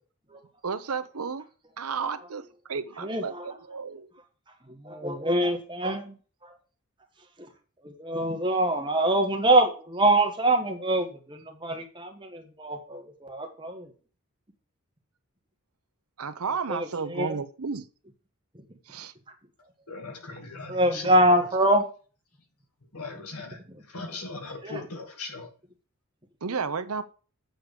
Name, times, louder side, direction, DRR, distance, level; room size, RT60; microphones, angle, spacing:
voice 1, 0.6-1.4 1.8-2.4 2.7-4.1 16.2-17.8 18.9-19.1 26.4-27.0, right 5 dB, 80° right, 0.8 m, -32 dB
voice 2, 3.0-3.5 4.8-6.1 7.8-13.9 16.7-17.4 20.7-21.8 24.6-24.8, right 1 dB, 20° right, 1.5 m, -24 dB
voice 3, 19.9-21.5 22.9-23.6 23.9-25.5, left 3 dB, 90° left, 2.3 m, -39 dB
8.0 x 4.7 x 6.6 m
head